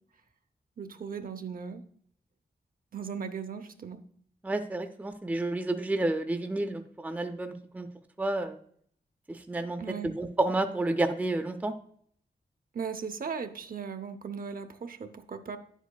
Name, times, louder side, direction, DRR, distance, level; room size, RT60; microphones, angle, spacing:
voice 1, 0.8-1.8 2.9-4.0 9.8-10.1 12.7-15.6, right 6 dB, 55° right, 7 dB, 0.7 m, -37 dB
voice 2, 4.4-7.9 8.2-8.6 9.3-11.7, right 2 dB, 10° right, 6 dB, 0.5 m, -30 dB
10.0 x 8.1 x 2.2 m, 0.62 s
wide cardioid pair, 145°, 17 cm